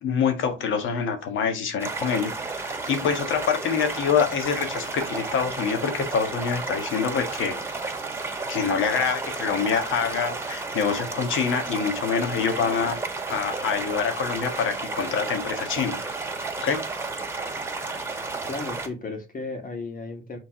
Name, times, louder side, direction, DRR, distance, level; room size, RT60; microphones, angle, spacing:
voice 1, 0.0-2.3 2.6-7.6 8.5-13.0 13.3-16.0 16.6-16.9, left 6 dB, 80° left, 7 dB, 1.6 m, -26 dB
sound 1, 1.8-18.9, right 3 dB, 10° right, 2.1 m, -32 dB
voice 2, 18.4-20.4, left 3 dB, 45° left, 4 dB, 2.3 m, -34 dB
6.3 x 3.9 x 4.9 m, 0.28 s
cardioid pair, 90°, 20 cm